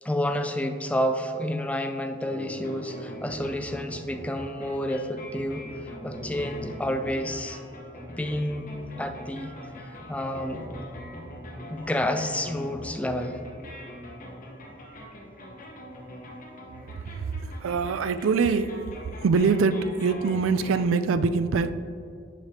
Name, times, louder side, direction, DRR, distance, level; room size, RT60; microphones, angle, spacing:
voice 1, 0.0-7.6 8.0-8.7 9.0-9.5 10.1-10.6 11.7-13.4, left 1 dB, 5° left, 7 dB, 0.3 m, -29 dB
sound 1, 2.2-5.6 6.0-9.7 10.3-14.6 15.2-15.3, right 2 dB, 35° right, 1.2 m, -46 dB
sound 2, 2.5-20.8, left 1 dB, 45° left, 1.1 m, -42 dB
voice 2, 17.2-18.8 19.2-21.7, right 4 dB, 85° right, 13 dB, 0.4 m, -24 dB
10.5 x 5.1 x 2.8 m, 2.4 s
head